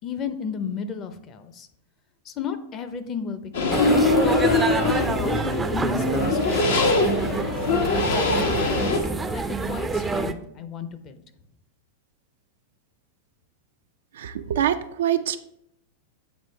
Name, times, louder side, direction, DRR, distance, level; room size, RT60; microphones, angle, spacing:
voice 1, 0.0-1.7 2.2-3.9 4.2-4.5 4.9-7.3 8.1-9.0 9.3-11.2, left 6 dB, 35° left, 10 dB, 0.6 m, -34 dB
sound 1, 3.5-9.0, left 3 dB, 85° left, 1.0 m, -23 dB
sound 2, 3.7-10.3, right 3 dB, 10° right, 0.4 m, -27 dB
voice 2, 14.2-15.4, right 10 dB, 80° right, 8 dB, 0.3 m, -24 dB
8.0 x 3.7 x 3.3 m, 0.74 s
hypercardioid pair, 130°, 0 cm